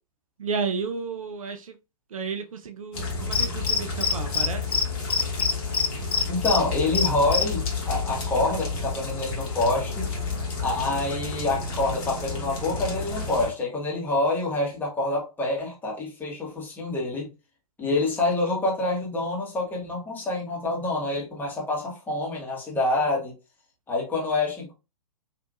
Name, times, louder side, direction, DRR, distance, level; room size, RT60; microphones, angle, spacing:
voice 1, 0.4-1.7 2.1-4.8, right 5 dB, 60° right, 0.5 m, -32 dB
sound 1, 2.9-13.5, left 4 dB, 35° left, 1.3 m, -31 dB
Cricket, 3.3-4.5 4.7-4.8 5.1-6.6 6.9-7.4, left 5 dB, 75° left, 0.5 m, -23 dB
voice 2, 6.3-10.1 10.6-17.3 17.8-23.3 23.9-24.7, left 2 dB, 10° left, 1.4 m, -27 dB
3.4 x 2.8 x 2.4 m
figure-of-eight pair, 115°, 20 cm